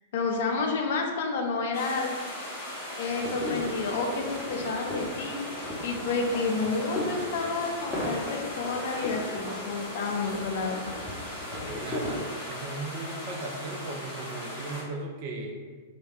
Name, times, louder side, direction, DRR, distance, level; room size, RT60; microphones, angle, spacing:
voice 1, 0.1-2.1 3.0-10.9, left 4 dB, 55° left, 2 dB, 0.4 m, -30 dB
sound 1, 1.7-14.8, left 1 dB, 15° right, 1.4 m, -39 dB
sound 2, 3.1-12.2, left 1 dB, 10° left, 0.8 m, -37 dB
voice 2, 11.6-15.6, right 2 dB, 45° right, 1 dB, 0.5 m, -37 dB
3.1 x 2.1 x 2.7 m, 1.5 s
figure-of-eight pair, 100°, 0 cm